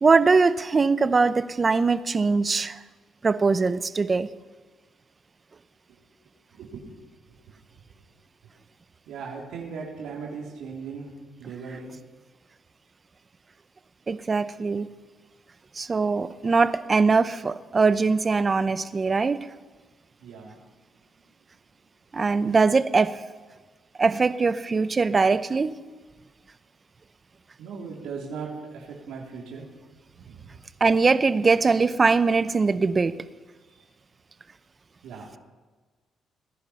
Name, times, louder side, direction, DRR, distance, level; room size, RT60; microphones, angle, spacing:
voice 1, 0.0-2.8 3.2-4.3 14.1-14.9 15.7-19.4 22.1-23.2 24.0-25.7 30.8-33.2, right 4 dB, 30° right, 13 dB, 0.8 m, -21 dB
voice 2, 6.5-6.9 9.1-11.1 11.4-11.9 20.2-20.6 27.6-29.7 30.2-30.5 33.7-33.8 35.0-35.4, right 5 dB, 85° right, -3 dB, 3.1 m, -38 dB
18.0 x 10.5 x 5.7 m, 1.3 s
cardioid pair, 90°, 0 cm